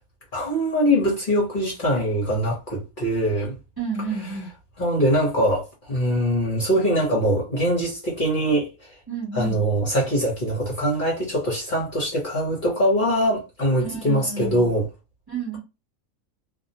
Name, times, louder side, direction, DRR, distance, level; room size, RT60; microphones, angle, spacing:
voice 1, 0.3-3.6 4.8-8.7 9.3-14.9, equal, 40° left, 0.9 m, -22 dB
voice 2, 3.8-4.5 9.1-9.6 13.8-14.7 15.3-15.6, right 5 dB, 20° right, 0.9 m, -30 dB
2.6 x 2.0 x 2.8 m
omnidirectional pair, 1.5 m